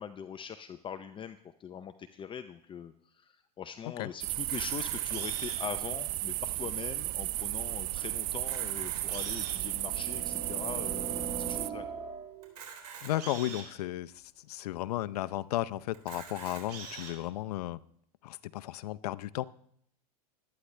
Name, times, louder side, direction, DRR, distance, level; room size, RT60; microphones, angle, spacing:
voice 1, 0.0-11.8, left 8 dB, 25° left, 0.6 m, -42 dB
sound 1, 4.2-11.7, right 19 dB, 45° right, 0.4 m, -34 dB
Camera, 4.4-5.7 6.4-6.5 6.7-6.8 7.4-7.5 8.3-9.7 10.3-10.4 12.4-13.7 14.4-14.5 14.7-14.8 15.9-17.1, right 6 dB, 90° right, 4.0 m, -44 dB
sound 2, 7.9-8.0 9.1-12.6, right 4 dB, 30° right, 2.0 m, -41 dB
voice 2, 13.0-14.1 14.5-17.8 18.2-19.4, left 15 dB, 75° left, 0.6 m, -34 dB
21.0 x 9.6 x 3.3 m
hypercardioid pair, 105°, 20 cm